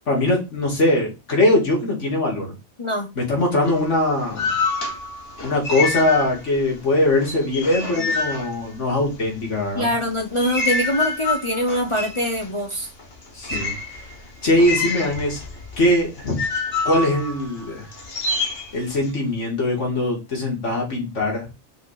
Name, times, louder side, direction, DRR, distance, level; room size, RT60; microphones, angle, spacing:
voice 1, 0.1-2.5 3.2-4.6 5.4-9.9 13.3-14.1 14.4-15.4 15.8-16.4 16.8-17.9 18.7-21.5, left 1 dB, 80° left, -1 dB, 2.7 m, -21 dB
voice 2, 2.8-3.1 7.9-8.1 9.7-12.9, equal, 25° left, 1 dB, 1.0 m, -24 dB
sound 1, 3.6-6.7 7.0-9.3 9.9-19.1, left 3 dB, 55° left, 1.7 m, -27 dB
5.3 x 4.3 x 5.7 m, 0.27 s
omnidirectional pair, 1.2 m